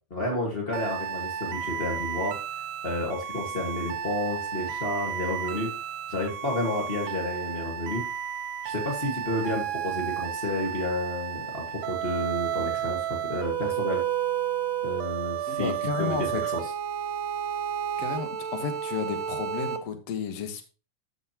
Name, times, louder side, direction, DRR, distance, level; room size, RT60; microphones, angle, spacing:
voice 1, 0.1-2.4 2.8-5.8 6.1-8.1 8.6-14.0 14.8-15.7 16.0-16.7, left 1 dB, 75° left, -1 dB, 0.5 m, -31 dB
sound 1, 0.7-19.8, right 9 dB, 80° right, 2.6 m, -32 dB
voice 2, 15.5-16.4 18.0-20.6, left 7 dB, 60° left, 6 dB, 2.0 m, -32 dB
13.5 x 6.2 x 2.9 m, 0.35 s
omnidirectional pair, 4.1 m